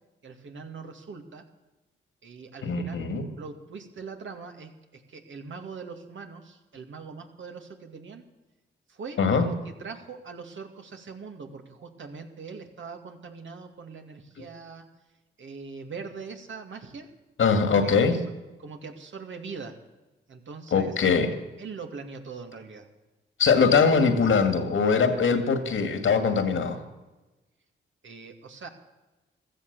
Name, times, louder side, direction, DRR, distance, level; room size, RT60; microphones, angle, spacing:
voice 1, 0.2-1.5 2.2-8.2 8.9-14.9 15.4-17.1 17.6-18.2 18.6-19.8 20.3-20.9 21.6-22.9 28.0-28.7, right 5 dB, 70° right, 4 dB, 2.4 m, -42 dB
voice 2, 2.6-3.3 9.2-9.5 17.4-18.2 20.7-21.3 23.4-26.8, left 5 dB, 70° left, 8 dB, 2.1 m, -22 dB
15.5 x 13.5 x 6.9 m, 1.1 s
cardioid pair, 60°, 21 cm